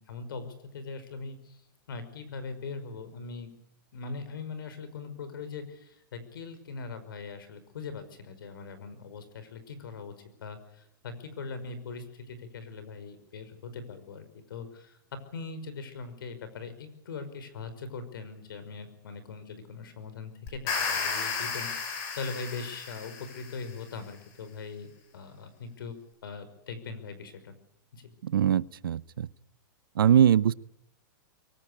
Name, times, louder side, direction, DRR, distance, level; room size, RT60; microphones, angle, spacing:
voice 1, 0.0-1.6 1.9-3.5 3.9-15.0 15.3-25.9 26.2-27.5 27.9-28.1, left 4 dB, 75° left, 11 dB, 5.5 m, -41 dB
sound 1, 20.5-23.6, left 5 dB, 35° left, 6.2 m, -33 dB
voice 2, 28.3-29.3 30.0-30.5, right 9 dB, 80° right, 19 dB, 0.8 m, -22 dB
23.5 x 18.5 x 8.8 m, 0.83 s
hypercardioid pair, 150°, 11 cm